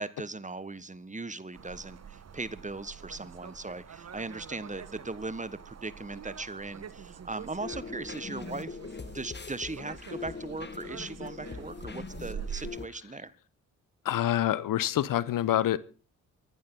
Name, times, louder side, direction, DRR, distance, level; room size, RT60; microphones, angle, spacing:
voice 1, 0.0-8.8 9.1-13.3, right 3 dB, 20° right, 1.5 m, -38 dB
sound 1, 1.5-12.7, right 8 dB, 45° right, 1.4 m, -46 dB
sound 2, 7.6-12.9, left 4 dB, 30° left, 1.7 m, -41 dB
voice 2, 14.0-15.8, left 12 dB, 60° left, 1.0 m, -26 dB
25.0 x 11.0 x 4.0 m
hypercardioid pair, 40°, 36 cm